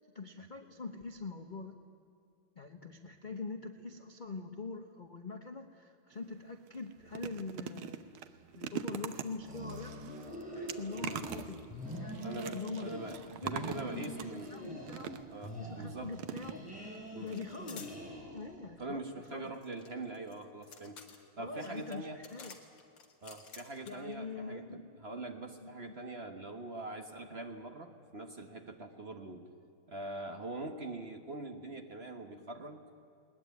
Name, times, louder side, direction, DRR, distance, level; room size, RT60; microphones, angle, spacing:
voice 1, 0.1-1.8 2.6-8.1 8.5-10.0 10.5-11.7 11.9-12.2 12.5-13.0 13.4-15.2 15.6-16.7 17.2-17.9 18.3-19.0 19.3-19.5 21.4-22.5 23.9-25.1 25.6-25.7, left 4 dB, 40° left, 6 dB, 0.7 m, -44 dB
sound 1, 6.1-6.3 6.7-15.5 16.2-17.0 17.3-17.4 17.7-17.8, right 9 dB, 85° right, 1.8 m, -43 dB
sound 2, 9.3-11.4 11.7-13.2 13.4-15.2 15.4-18.6, equal, 5° right, 7.9 m, -44 dB
voice 2, 12.2-14.5 15.3-16.2 17.1-17.3 18.8-21.0 21.4-22.2 23.2-29.5 29.9-32.8, right 2 dB, 35° right, 5 dB, 1.3 m, -43 dB
sound 3, 15.4-15.6 15.8-16.6 17.3-18.0 19.2-24.1, left 5 dB, 65° left, 2.6 m, -53 dB
20.5 x 20.0 x 9.4 m, 2.7 s
omnidirectional pair, 2.3 m